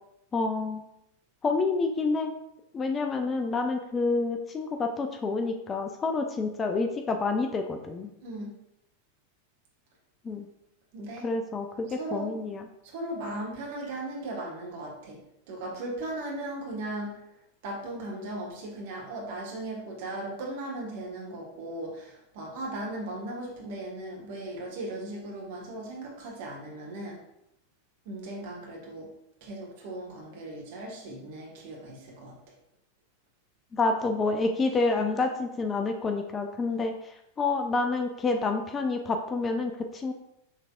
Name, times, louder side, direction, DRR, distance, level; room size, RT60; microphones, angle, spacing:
voice 1, 0.3-0.8 1.4-2.3 2.7-8.1 10.2-10.4 11.2-12.7 33.7-40.1, left 3 dB, 20° left, 5 dB, 0.4 m, -28 dB
voice 2, 8.2-8.6 10.9-11.3 11.9-12.3 12.8-15.2 15.5-17.2 17.6-27.2 28.0-29.1 29.4-32.3, right 1 dB, 50° right, -2 dB, 1.2 m, -37 dB
5.7 x 3.3 x 2.4 m, 0.81 s
figure-of-eight pair, 90°, 0 cm